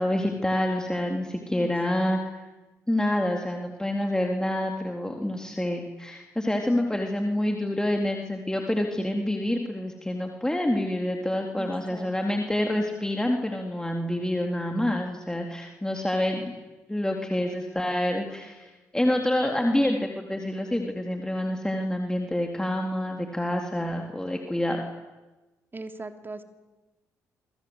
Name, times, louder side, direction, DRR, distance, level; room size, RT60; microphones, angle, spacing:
voice 1, 0.0-2.3 2.9-16.5 16.9-24.8, left 1 dB, 10° left, 2 dB, 3.8 m, -27 dB
voice 2, 11.6-12.1 25.7-26.4, right 3 dB, 25° right, 7 dB, 3.6 m, -39 dB
27.5 x 25.5 x 8.3 m, 1.1 s
hypercardioid pair, 45°, 8 cm